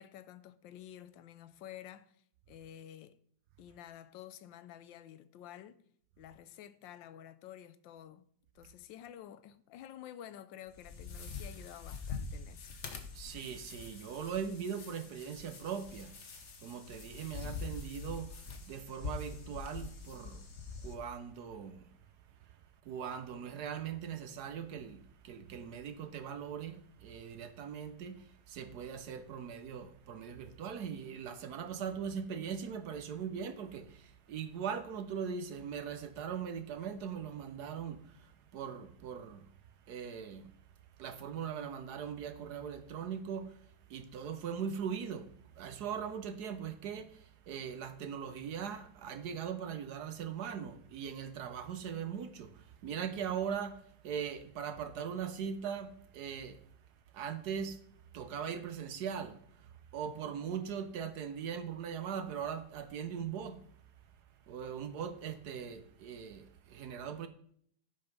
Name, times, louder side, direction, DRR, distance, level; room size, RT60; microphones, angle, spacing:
voice 1, 0.0-2.2 2.5-3.2 3.6-5.8 6.2-8.2 8.5-12.8, left 11 dB, 85° left, 1.4 m, -51 dB
sound 1, 10.7-20.9, left 5 dB, 45° left, 1.2 m, -45 dB
voice 2, 13.1-20.5 20.8-21.9 22.4-39.5 39.9-40.5 41.0-56.6 57.1-57.9 58.1-63.6 64.5-67.3, right 7 dB, 65° right, 1.2 m, -40 dB
11.0 x 5.4 x 5.2 m
omnidirectional pair, 2.0 m